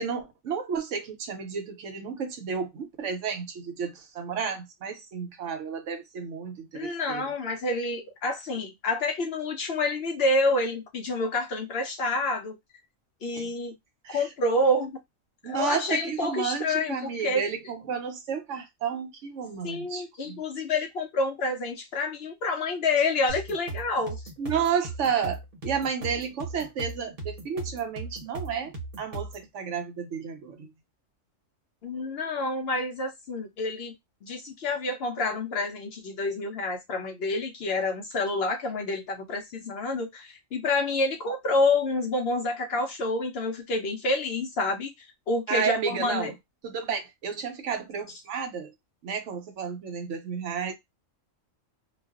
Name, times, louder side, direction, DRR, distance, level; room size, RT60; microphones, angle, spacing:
voice 1, 0.0-7.2 13.3-13.5 14.0-14.2 15.4-20.4 24.4-30.7 45.5-46.3 46.6-48.7 49.0-50.7, right 6 dB, 70° right, 0.9 m, -32 dB
voice 2, 6.7-12.6 13.2-13.7 14.1-15.0 15.4-17.5 19.6-24.2 31.8-33.9 34.2-46.3, left 2 dB, 60° left, 0.7 m, -28 dB
sound 1, 23.3-29.5, right 3 dB, 40° right, 1.0 m, -38 dB
2.5 x 2.2 x 2.2 m
omnidirectional pair, 1.3 m